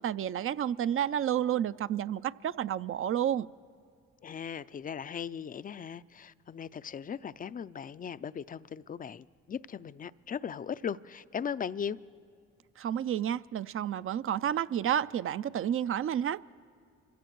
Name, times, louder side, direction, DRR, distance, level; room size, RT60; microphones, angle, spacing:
voice 1, 0.0-3.5 12.8-16.4, right 10 dB, 40° right, 0.4 m, -30 dB
voice 2, 4.2-12.0, left 7 dB, 25° left, 0.4 m, -38 dB
27.5 x 16.0 x 3.1 m
hypercardioid pair, 40°, 32 cm